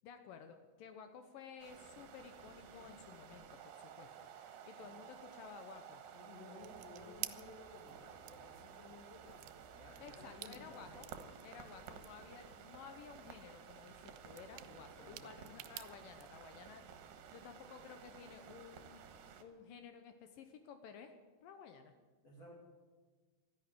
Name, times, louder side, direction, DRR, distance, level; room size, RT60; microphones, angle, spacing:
voice 1, 0.0-4.3 4.7-6.0 10.0-11.1 11.4-16.8 17.3-19.0 19.4-21.1 21.4-21.9, left 6 dB, 75° left, 7 dB, 2.4 m, -54 dB
sound 1, 1.6-19.4, right 7 dB, 70° right, 2.7 m, -55 dB
voice 2, 4.5-4.9 6.1-11.1 14.5-15.4 22.2-22.5, left 2 dB, 45° left, -4 dB, 3.3 m, -57 dB
sound 2, 6.6-16.3, right 15 dB, 85° right, 2.6 m, -53 dB
12.5 x 10.5 x 9.8 m, 1.4 s
omnidirectional pair, 4.4 m